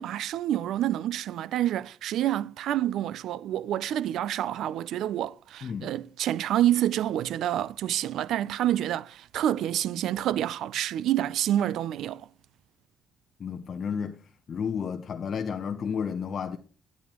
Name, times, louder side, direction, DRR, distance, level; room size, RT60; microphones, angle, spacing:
voice 1, 0.0-12.2, right 12 dB, 80° right, 0.4 m, -28 dB
voice 2, 5.6-5.9 13.4-14.2 14.5-16.6, left 6 dB, 50° left, 0.7 m, -32 dB
11.0 x 10.5 x 3.0 m
cardioid pair, 90°, 0 cm